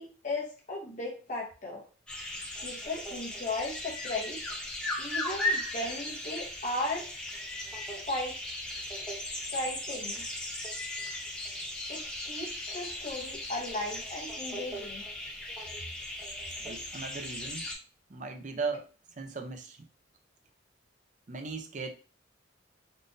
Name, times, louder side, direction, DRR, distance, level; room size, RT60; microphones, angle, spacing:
voice 1, 0.0-1.8 2.6-4.4 5.0-7.1 8.1-8.4 9.5-10.3 11.9-15.1, left 2 dB, 40° left, -2 dB, 0.9 m, -36 dB
sound 1, 2.1-17.7, left 1 dB, 5° left, 0.7 m, -37 dB
voice 2, 16.6-17.6 18.1-18.9 19.2-19.8 21.3-21.9, right 4 dB, 40° right, 5 dB, 0.5 m, -37 dB
3.7 x 2.6 x 2.5 m, 0.37 s
head